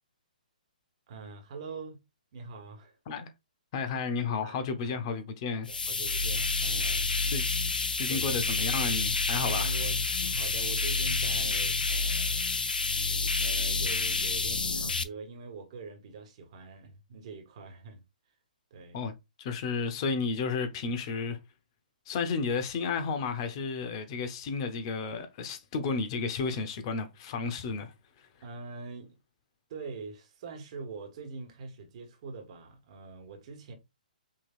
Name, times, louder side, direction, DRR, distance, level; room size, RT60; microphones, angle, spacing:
voice 1, 1.1-2.0 2.3-3.0 4.4-5.0 5.7-7.4 8.1-8.2 9.4-12.6 13.4-18.0 18.7-19.0 28.4-29.2 29.7-33.7, right 4 dB, 45° right, 1.5 m, -44 dB
voice 2, 3.7-5.7 7.3-7.4 8.0-9.8 18.9-19.1 19.4-21.4 22.1-27.9 28.2-28.3, left 5 dB, 40° left, 0.9 m, -32 dB
sound 1, 5.7-15.0, left 3 dB, 85° left, 0.5 m, -29 dB
5.7 x 3.1 x 2.4 m
hypercardioid pair, 135°, 5 cm